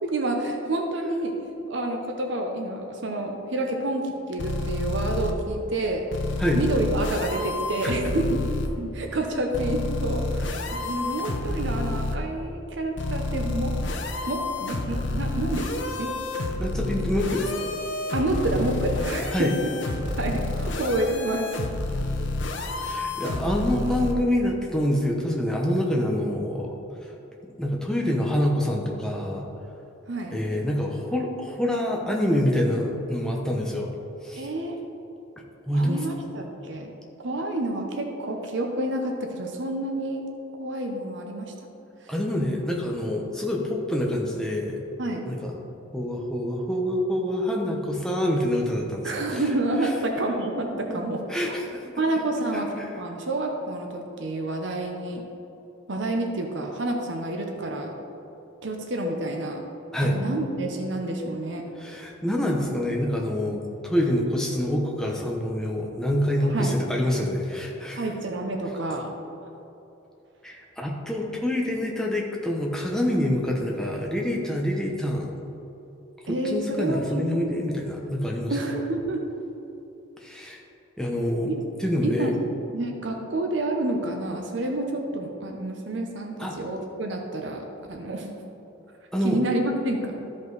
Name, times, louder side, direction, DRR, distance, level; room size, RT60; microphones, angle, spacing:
voice 1, 0.0-1.4 1.7-6.0 6.5-8.4 8.8-13.7 14.3-15.7 16.0-16.1 18.1-19.7 20.2-21.5 30.1-30.3 34.4-34.8 35.7-36.9 37.2-40.2 40.6-41.5 42.0-42.1 45.0-45.3 49.0-51.5 52.0-55.2 55.9-58.0 58.6-59.6 60.0-61.7 66.4-66.8 67.9-69.1 76.3-77.7 78.5-79.3 81.5-81.7 82.0-82.4 82.7-88.4 89.2-90.2, right 2 dB, 60° right, 2 dB, 0.8 m, -29 dB
sound 1, 4.4-5.3 6.1-8.7 9.5-12.2 13.0-24.1, left 2 dB, 60° left, 0.8 m, -29 dB
voice 2, 16.6-17.6 19.3-19.5 22.8-26.7 27.6-29.5 30.3-33.9 34.2-34.5 35.7-36.0 42.1-44.8 45.3-45.6 45.9-49.4 49.8-49.9 50.9-51.0 51.3-51.8 52.5-52.9 59.9-60.2 61.8-68.0 70.4-75.3 76.3-78.6 80.2-80.6 81.0-81.5 81.8-82.3 86.4-86.6 89.1-89.4, left 1 dB, 5° left, -1 dB, 0.9 m, -26 dB
13.0 x 5.2 x 4.0 m, 3.0 s
head